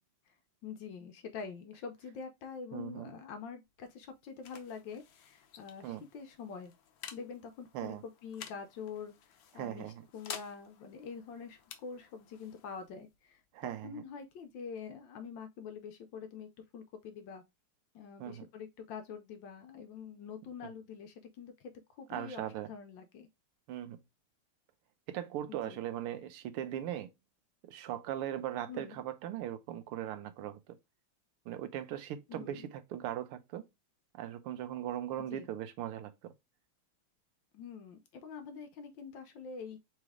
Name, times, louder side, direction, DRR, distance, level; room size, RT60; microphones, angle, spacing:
voice 1, 0.6-6.7 7.1-17.4 17.9-23.3 25.6-25.8 28.7-29.0 32.3-32.7 35.3-35.5 37.5-39.8, left 6 dB, 70° left, 1.2 m, -46 dB
voice 2, 2.7-3.1 5.8-6.0 7.7-8.0 9.5-10.0 13.5-14.0 18.2-18.5 22.1-22.7 23.7-24.0 25.1-27.1 27.6-30.8 31.5-33.6 34.1-36.3, right 11 dB, 85° right, 1.6 m, -39 dB
sound 1, 3.6-15.0, left 8 dB, 85° left, 0.8 m, -52 dB
3.9 x 3.2 x 3.5 m
omnidirectional pair, 2.4 m